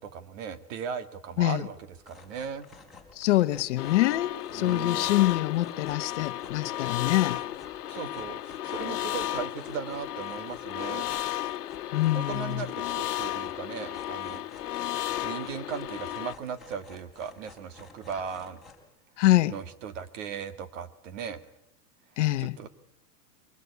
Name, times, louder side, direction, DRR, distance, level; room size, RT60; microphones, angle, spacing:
voice 1, 0.0-1.8 2.1-2.7 4.6-5.1 7.9-11.1 12.1-14.4 15.2-18.6 19.5-21.4 22.4-22.7, right 7 dB, 55° right, 2.0 m, -37 dB
sound 1, 1.9-18.9, left 3 dB, ahead, 3.7 m, -52 dB
voice 2, 3.2-7.4 11.9-12.6 19.2-19.5 22.2-22.6, left 16 dB, 50° left, 1.0 m, -25 dB
sound 2, 3.8-16.3, left 13 dB, 75° left, 1.2 m, -34 dB
23.0 x 20.0 x 8.2 m
supercardioid pair, 160°, 46 cm